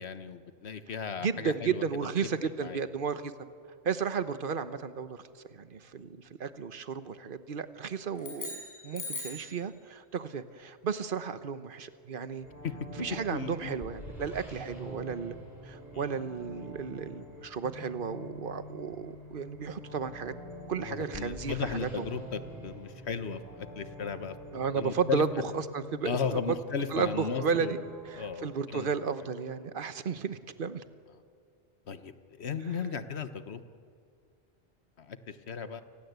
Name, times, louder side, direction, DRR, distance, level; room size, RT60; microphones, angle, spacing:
voice 1, 0.0-1.8 2.4-2.8 12.6-12.7 13.3-13.7 15.9-16.0 20.8-25.2 26.0-27.8 28.1-28.9 31.9-33.6 35.0-35.8, left 6 dB, 80° left, 11 dB, 1.4 m, -36 dB
voice 2, 1.2-3.3 3.8-5.2 5.5-12.5 13.0-15.3 15.6-20.3 20.7-22.1 24.5-25.3 25.5-26.6 26.9-27.8 28.0-30.8, right 6 dB, 55° right, 12 dB, 1.2 m, -33 dB
sound 1, 8.2-9.5, left 2 dB, 15° left, 6.0 m, -39 dB
sound 2, 12.4-28.4, equal, 40° left, 6.0 m, -46 dB
29.5 x 19.5 x 8.2 m, 2.2 s
omnidirectional pair, 1.1 m